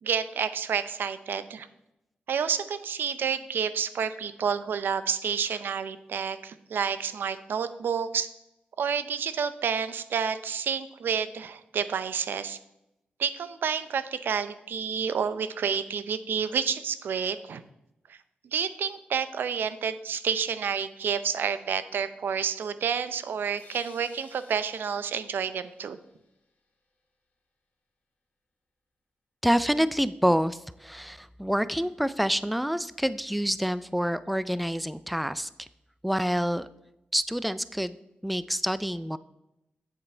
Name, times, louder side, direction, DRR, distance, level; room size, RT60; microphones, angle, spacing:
voice 1, 0.0-1.7 2.3-8.3 8.8-12.6 13.2-17.6 18.1-18.2 18.4-26.0, right 7 dB, 80° right, 12 dB, 0.6 m, -29 dB
sound 1, 23.6-26.6, left 4 dB, 75° left, 2.1 m, -56 dB
voice 2, 29.4-35.7 36.0-36.7 37.1-38.0 38.2-39.2, equal, ahead, 15 dB, 0.3 m, -27 dB
8.2 x 7.5 x 4.4 m, 0.87 s
wide cardioid pair, 105°, 3 cm